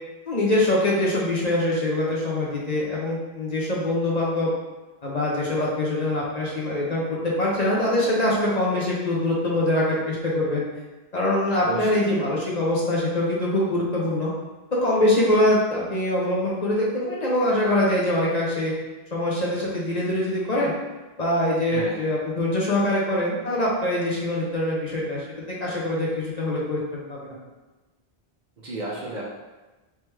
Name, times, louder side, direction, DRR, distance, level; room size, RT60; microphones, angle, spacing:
voice 1, 0.3-4.5 5.0-10.6 11.1-14.3 14.7-18.7 19.1-20.7 21.2-27.3, left 1 dB, 45° left, -5 dB, 0.8 m, -24 dB
voice 2, 11.7-12.1 21.7-22.0 28.6-29.2, right 2 dB, 50° right, -4 dB, 0.7 m, -32 dB
3.3 x 3.2 x 3.1 m, 1.1 s
omnidirectional pair, 1.0 m